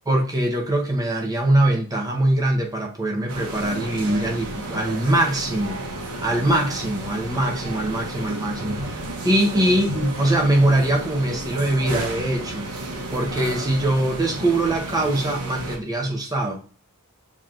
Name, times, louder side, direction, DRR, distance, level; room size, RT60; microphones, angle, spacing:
voice 1, 0.1-5.8 6.2-12.7 13.1-16.6, right 1 dB, 15° right, 0.9 m, -22 dB
sound 1, 3.3-15.8, right 2 dB, 70° right, 0.9 m, -32 dB
7.0 x 2.9 x 2.5 m
head